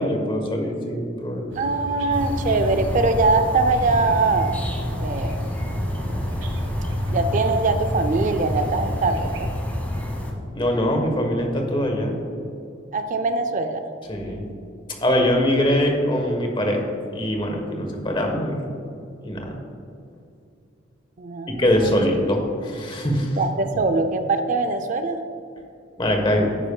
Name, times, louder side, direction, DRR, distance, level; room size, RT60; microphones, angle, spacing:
voice 1, 0.0-1.5 10.5-12.2 14.1-14.5 15.0-18.7 19.2-19.6 21.5-23.4 26.0-26.6, left 1 dB, 25° left, 2 dB, 1.2 m, -23 dB
sound 1, 1.5-9.4, equal, 85° right, 1.5 m, -33 dB
voice 2, 1.6-5.4 7.1-9.5 12.9-13.8 21.2-21.9 23.4-25.2, right 3 dB, 45° right, 8 dB, 0.5 m, -22 dB
sound 2, 2.1-10.3, left 1 dB, 10° left, 1.3 m, -28 dB
10.0 x 9.9 x 2.3 m, 2.6 s
head